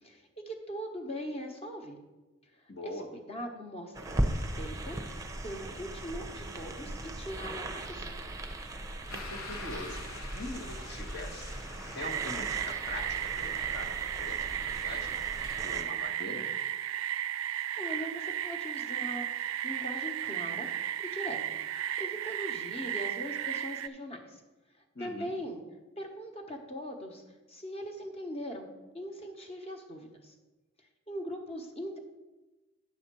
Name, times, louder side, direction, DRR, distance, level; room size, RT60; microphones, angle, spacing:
voice 1, 0.0-2.0 2.4-5.0 5.4-8.1 17.8-20.7 21.0-21.6 22.0-24.4 25.0-25.6 26.0-30.3 31.1-32.0, equal, 30° left, 3 dB, 1.1 m, -41 dB
voice 2, 2.7-3.1 9.1-11.6 11.9-15.2 15.6-16.5 24.9-25.3, left 2 dB, 50° left, 3 dB, 1.2 m, -43 dB
sound 1, 3.9-15.8, right 1 dB, 15° right, 0.7 m, -38 dB
sound 2, 9.1-15.5, left 4 dB, 80° left, 0.9 m, -48 dB
sound 3, 12.0-23.9, right 10 dB, 70° right, 0.4 m, -34 dB
9.7 x 4.2 x 6.8 m, 1.1 s
head